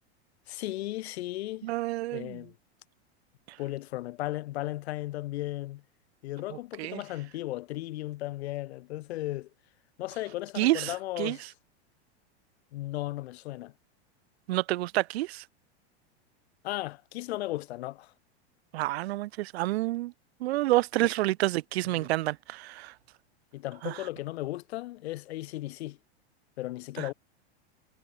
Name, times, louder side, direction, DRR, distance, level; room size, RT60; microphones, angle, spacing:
voice 1, 0.5-1.7 2.1-2.5 3.6-5.8 6.2-9.5 10.0-11.4 12.7-13.7 16.6-18.1 21.9-22.1 23.5-26.0 26.6-27.1, left 16 dB, 70° left, 6.6 m, -35 dB
voice 2, 1.6-2.5 3.5-3.6 6.5-7.0 10.6-11.4 14.5-15.4 18.7-20.1 20.4-22.9 23.8-24.0 27.0-27.1, right 17 dB, 65° right, 4.4 m, -29 dB
supercardioid pair, 140°, 33 cm